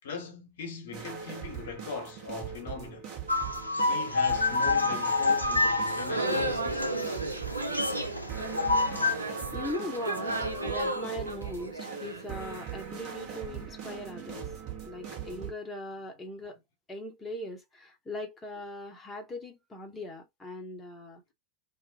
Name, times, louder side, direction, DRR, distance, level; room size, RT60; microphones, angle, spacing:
voice 1, 0.0-3.1 3.9-7.2, left 4 dB, 60° left, 0.8 m, -40 dB
sound 1, 0.9-15.5, right 8 dB, 40° right, 1.0 m, -41 dB
sound 2, 3.3-9.2, left 3 dB, 90° left, 0.4 m, -28 dB
sound 3, 5.8-12.8, right 1 dB, 80° right, 0.5 m, -34 dB
voice 2, 9.5-16.6 16.9-21.3, left 1 dB, 15° left, 0.7 m, -40 dB
2.4 x 2.1 x 2.6 m
figure-of-eight pair, 90°, 0 cm